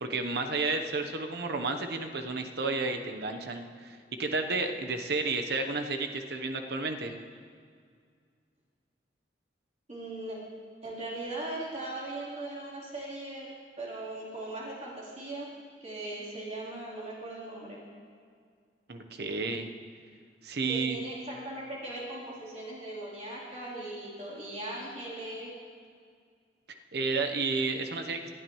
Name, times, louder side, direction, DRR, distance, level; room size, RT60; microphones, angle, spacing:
voice 1, 0.0-7.1 18.9-19.7 20.4-21.0 26.9-28.2, right 3 dB, 65° right, 6 dB, 1.0 m, -31 dB
voice 2, 9.9-10.4 10.8-13.5 13.8-15.5 15.8-17.8 20.7-25.5, right 2 dB, 40° right, -6 dB, 3.7 m, -39 dB
19.5 x 12.5 x 3.2 m, 2.1 s
head